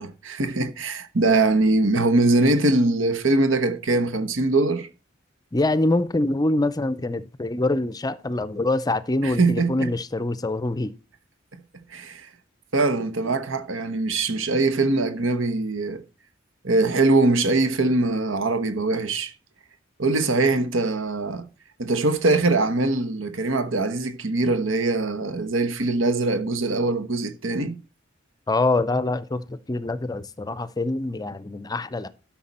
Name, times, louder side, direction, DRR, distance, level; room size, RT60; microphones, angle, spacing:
voice 1, 0.0-4.9 9.2-9.9 11.9-12.3 12.7-16.0 16.6-19.3 20.0-21.5 21.8-27.8, right 2 dB, 85° right, 1.1 m, -22 dB
voice 2, 5.5-10.9 28.5-32.1, left 2 dB, 20° left, 0.5 m, -25 dB
12.5 x 5.9 x 4.2 m
head